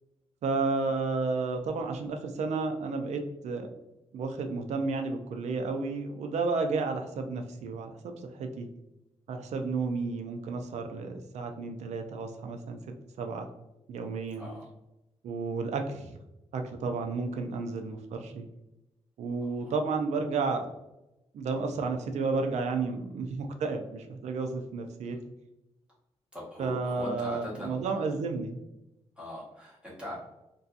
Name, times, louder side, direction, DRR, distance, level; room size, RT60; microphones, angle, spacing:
voice 1, 0.4-3.7 4.1-8.1 8.4-8.7 9.3-12.8 13.2-13.5 13.9-14.5 15.2-16.2 16.5-18.5 19.2-20.7 21.3-25.2 26.6-28.6, right 4 dB, 90° right, 5 dB, 0.4 m, -32 dB
voice 2, 19.4-19.7 25.0-25.2 26.3-28.1 29.2-30.2, left 1 dB, 10° right, -6 dB, 1.0 m, -41 dB
2.6 x 2.2 x 2.4 m, 0.93 s
wide cardioid pair, 130°, 11 cm